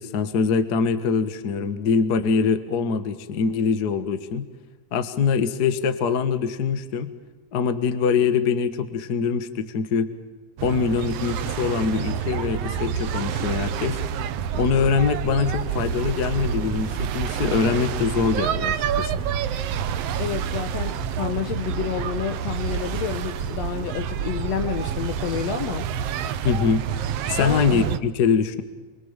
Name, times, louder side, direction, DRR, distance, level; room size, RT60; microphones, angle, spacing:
voice 1, 0.0-4.5 4.9-7.1 7.5-10.1 10.6-14.0 14.5-19.1 26.4-26.8 27.3-28.6, left 6 dB, 50° left, 11 dB, 1.2 m, -23 dB
sound 1, 10.6-28.0, right 8 dB, 70° right, 1.6 m, -28 dB
voice 2, 20.2-25.9 27.4-27.6, left 9 dB, 65° left, 9 dB, 1.8 m, -29 dB
28.0 x 24.0 x 7.4 m, 1.3 s
omnidirectional pair, 3.9 m